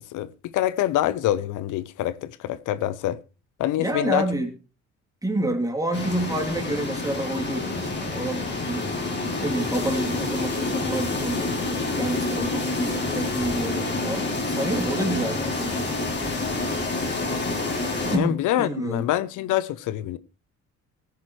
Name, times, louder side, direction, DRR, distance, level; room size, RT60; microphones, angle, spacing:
voice 1, 0.1-3.2 3.6-4.2 18.1-20.2, left 13 dB, 85° left, 0.7 m, -25 dB
voice 2, 3.8-4.5 5.2-8.9 9.4-11.7 11.9-15.9 18.0-19.1, right 1 dB, 10° right, 3.1 m, -29 dB
sound 1, 5.9-18.2, left 2 dB, 35° left, 3.4 m, -28 dB
17.0 x 10.5 x 3.2 m
cardioid pair, 90°, 30 cm